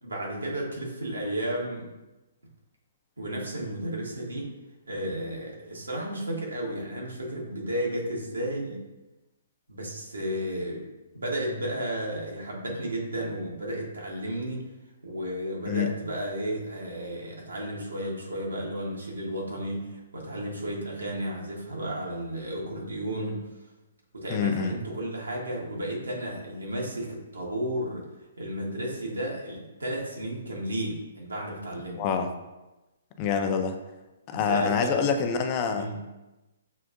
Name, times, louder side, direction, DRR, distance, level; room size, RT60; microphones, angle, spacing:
voice 1, 0.0-1.9 3.2-4.5 4.9-8.8 9.7-10.9 11.1-14.7 15.0-23.5 24.1-28.0 28.4-32.0 34.3-35.1 35.7-36.1, right 1 dB, 85° right, -2 dB, 1.2 m, -33 dB
voice 2, 24.3-24.8 31.9-32.3 33.2-33.8 34.3-36.1, left 6 dB, 35° left, 6 dB, 0.5 m, -26 dB
6.3 x 2.5 x 2.5 m, 1.0 s
figure-of-eight pair, 130°, 0 cm